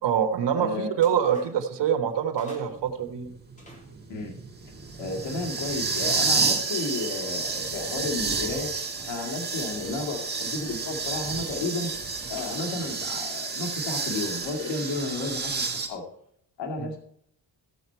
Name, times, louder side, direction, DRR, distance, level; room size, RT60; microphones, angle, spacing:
voice 1, 0.0-3.3 16.8-16.9, right 8 dB, 80° right, 6 dB, 1.5 m, -25 dB
voice 2, 0.5-1.3 4.1-4.3 5.0-8.7 9.1-11.9 12.3-16.0 16.6-17.0, left 3 dB, 85° left, 0 dB, 2.3 m, -32 dB
sound 1, 1.0-1.7 2.1-2.2 2.4-2.8 3.6-16.3, right 2 dB, 15° left, 3.0 m, -50 dB
sound 2, 2.7-15.9, right 4 dB, 25° right, 1.8 m, -30 dB
15.5 x 7.0 x 4.5 m, 0.68 s
cardioid pair, 125°, 42 cm